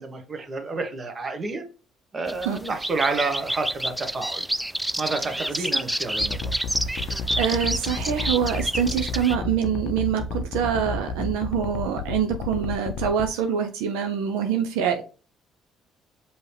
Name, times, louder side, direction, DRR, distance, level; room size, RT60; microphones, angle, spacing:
voice 1, 0.0-1.6 2.1-4.4 5.0-6.5, right 3 dB, 40° right, 1.1 m, -29 dB
sound 1, 2.3-9.4, right 1 dB, 5° right, 0.3 m, -29 dB
sound 2, 6.2-13.3, left 4 dB, 70° left, 0.4 m, -31 dB
voice 2, 7.0-15.0, right 8 dB, 85° right, 0.4 m, -25 dB
5.4 x 2.8 x 3.3 m
supercardioid pair, 65°, 0 cm